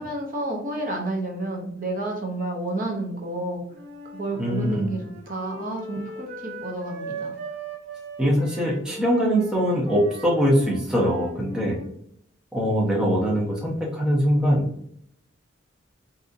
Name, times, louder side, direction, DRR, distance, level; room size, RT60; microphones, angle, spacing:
voice 1, 0.0-3.6 4.1-7.3, right 2 dB, 45° right, 0 dB, 0.7 m, -30 dB
Wind instrument woodwind instrument, 3.7-11.9, right 2 dB, 80° right, 0.8 m, -40 dB
voice 2, 4.4-4.9 8.2-11.8 12.5-14.7, equal, 5° right, -4 dB, 0.6 m, -22 dB
3.8 x 2.7 x 2.5 m, 0.69 s
head